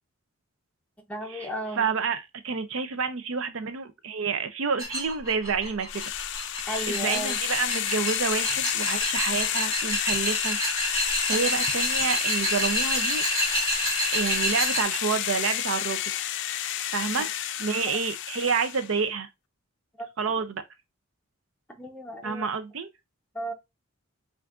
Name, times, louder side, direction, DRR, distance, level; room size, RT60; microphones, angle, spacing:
voice 1, 1.1-1.9 6.7-7.4 11.3-11.5 17.2-17.3 20.0-20.3 21.7-22.5 23.3-23.5, right 1 dB, 5° left, 0.9 m, -35 dB
voice 2, 1.8-6.0 6.9-10.6 11.0-13.2 14.1-16.0 16.9-17.3 17.6-19.3 20.2-20.6 22.2-22.9, right 5 dB, 65° right, 0.5 m, -29 dB
sound 1, 4.8-14.8, right 1 dB, 15° right, 2.0 m, -29 dB
sound 2, 5.9-19.0, left 11 dB, 55° left, 0.4 m, -30 dB
5.8 x 2.6 x 2.4 m
head